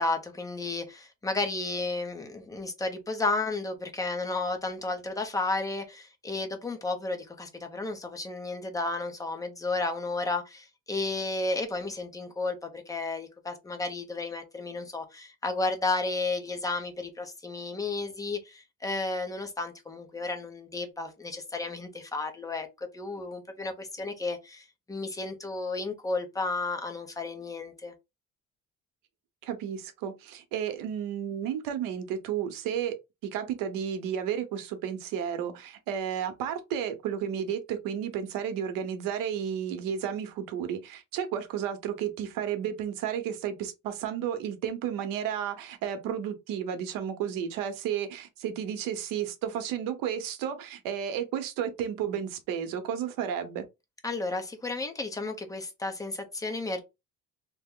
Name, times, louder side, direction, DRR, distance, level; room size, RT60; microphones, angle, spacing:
voice 1, 0.0-27.9 54.0-56.8, left 3 dB, 10° left, 0.6 m, -33 dB
voice 2, 29.4-33.0 33.2-53.6, right 9 dB, 80° right, 0.8 m, -32 dB
2.9 x 2.1 x 3.6 m
cardioid pair, 130°, 33 cm